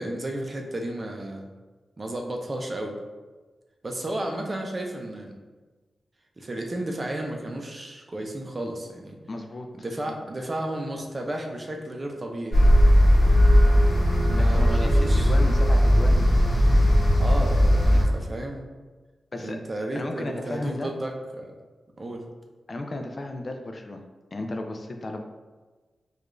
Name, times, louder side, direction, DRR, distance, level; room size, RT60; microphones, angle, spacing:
voice 1, 0.0-1.4 2.0-3.0 3.8-5.4 6.4-9.2 9.8-12.9 14.2-15.3 17.2-18.6 19.4-21.6 22.0-22.2, right 1 dB, 40° right, 2 dB, 0.5 m, -33 dB
voice 2, 9.3-9.7 14.3-16.8 17.9-18.0 19.3-19.6 20.0-20.9 22.7-24.0 24.3-25.2, left 2 dB, 45° left, 4 dB, 0.4 m, -34 dB
sound 1, 12.5-18.0, equal, 65° left, 0.8 m, -18 dB
4.7 x 2.4 x 2.5 m, 1.3 s
cardioid pair, 60°, 0 cm